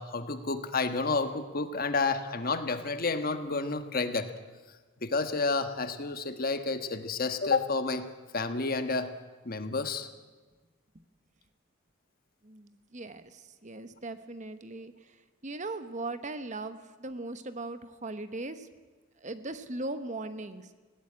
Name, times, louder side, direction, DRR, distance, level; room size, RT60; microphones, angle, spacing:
voice 1, 0.0-4.3 5.0-8.1 8.3-9.1 9.4-10.1, left 3 dB, 45° left, 9 dB, 1.3 m, -30 dB
voice 2, 12.4-15.1 15.4-18.7 19.2-20.7, right 2 dB, 35° right, 10 dB, 1.0 m, -39 dB
19.5 x 16.5 x 9.8 m, 1.3 s
head